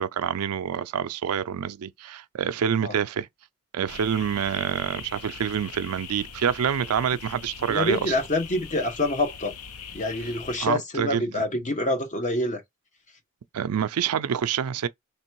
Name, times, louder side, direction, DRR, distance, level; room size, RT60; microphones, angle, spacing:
voice 1, 0.0-3.3 3.7-8.1 10.6-11.3 13.5-14.9, right 8 dB, 85° right, 0.4 m, -27 dB
sound 1, 3.9-10.6, left 6 dB, 85° left, 0.7 m, -41 dB
voice 2, 7.7-9.5 9.9-12.6, left 1 dB, 35° left, 1.1 m, -26 dB
3.3 x 3.0 x 4.6 m
head